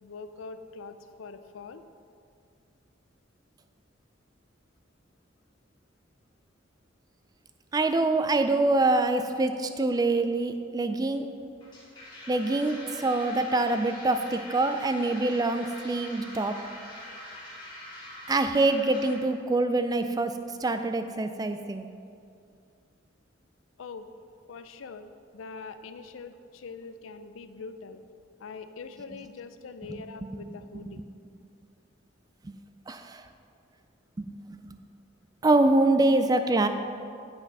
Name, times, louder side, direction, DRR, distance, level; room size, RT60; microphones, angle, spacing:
voice 1, 0.0-1.8 23.8-24.1 24.5-28.0 28.4-31.0, left 4 dB, 85° left, 10 dB, 0.5 m, -43 dB
voice 2, 7.7-11.3 12.3-16.6 18.3-21.9 29.9-30.0 30.7-31.0 32.4-32.6 32.9-33.3 34.2-34.8 35.4-36.7, right 2 dB, 20° right, 8 dB, 0.3 m, -25 dB
sound 1, 11.6-19.2, left 1 dB, 20° left, 1.7 m, -44 dB
8.2 x 5.8 x 5.4 m, 2.4 s
head